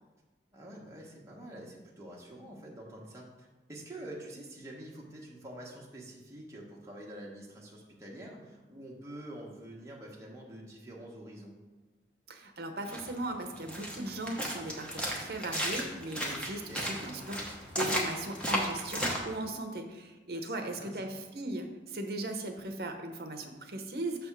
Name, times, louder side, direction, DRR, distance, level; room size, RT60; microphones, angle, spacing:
voice 1, 0.5-11.6 16.5-16.9 20.3-21.0, right 1 dB, 15° right, -3 dB, 1.0 m, -47 dB
voice 2, 12.3-24.3, right 1 dB, 60° right, 5 dB, 0.8 m, -38 dB
sound 1, 12.9-19.2, equal, 5° left, 0.8 m, -35 dB
6.5 x 3.5 x 5.9 m, 1.2 s
head